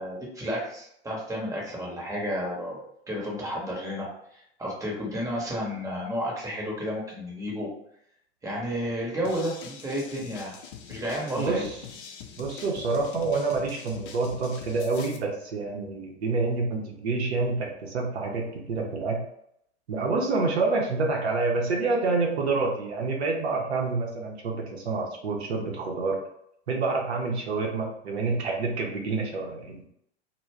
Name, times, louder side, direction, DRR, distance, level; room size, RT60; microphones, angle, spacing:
voice 1, 0.0-2.8 3.1-7.7 8.4-10.6 10.9-11.7, equal, 10° right, -3 dB, 0.9 m, -32 dB
sound 1, 9.2-15.2, left 7 dB, 50° left, 0.5 m, -43 dB
voice 2, 12.4-19.2 19.9-26.2 26.7-29.9, right 3 dB, 70° right, -1 dB, 0.7 m, -27 dB
2.2 x 2.2 x 3.4 m, 0.74 s
figure-of-eight pair, 85°, 34 cm